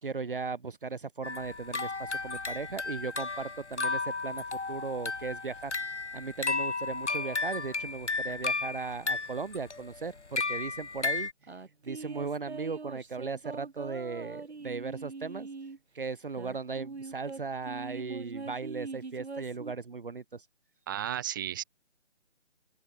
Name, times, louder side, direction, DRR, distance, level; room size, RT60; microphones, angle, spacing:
voice 1, 0.0-11.6 11.9-15.5 15.9-20.5, right 4 dB, 50° right, 2.1 m, -37 dB
sound 1, 1.2-11.3, left 3 dB, 75° left, 4.0 m, -34 dB
sound 2, 11.4-15.8 16.3-19.7, right 4 dB, 65° right, 4.2 m, -42 dB
voice 2, 20.9-21.6, right 11 dB, 15° right, 4.3 m, -33 dB
open air
figure-of-eight pair, 170°, 35 cm